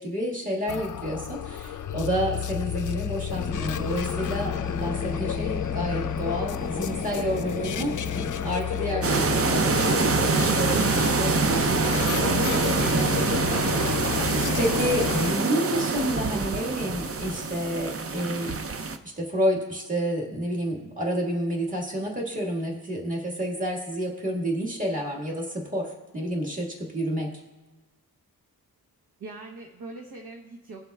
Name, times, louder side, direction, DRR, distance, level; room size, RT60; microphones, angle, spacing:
voice 1, 0.0-13.5 14.6-18.9 19.2-27.3, equal, 20° right, -2 dB, 1.7 m, -30 dB
sound 1, 0.7-15.3, left 10 dB, 55° left, 0.4 m, -31 dB
sound 2, 3.3-8.5, left 2 dB, 25° left, 0.8 m, -35 dB
sound 3, 9.0-19.0, right 4 dB, 35° right, 0.5 m, -25 dB
voice 2, 13.4-14.1 29.2-30.9, right 3 dB, 65° right, 0 dB, 1.0 m, -41 dB
18.5 x 7.4 x 2.3 m, 1.2 s
wide cardioid pair, 130°, 38 cm